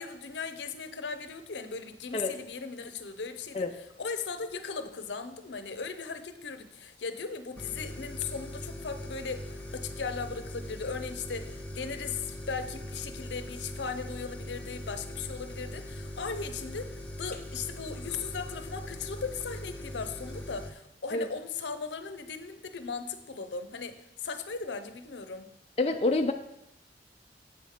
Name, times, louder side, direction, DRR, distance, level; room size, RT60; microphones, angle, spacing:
voice 1, 0.0-25.5, left 5 dB, 80° left, 9 dB, 0.7 m, -38 dB
sound 1, 7.6-20.7, left 1 dB, 5° left, 1.0 m, -41 dB
voice 2, 25.8-26.3, left 2 dB, 35° left, 4 dB, 0.4 m, -26 dB
7.9 x 5.8 x 4.9 m, 0.84 s
head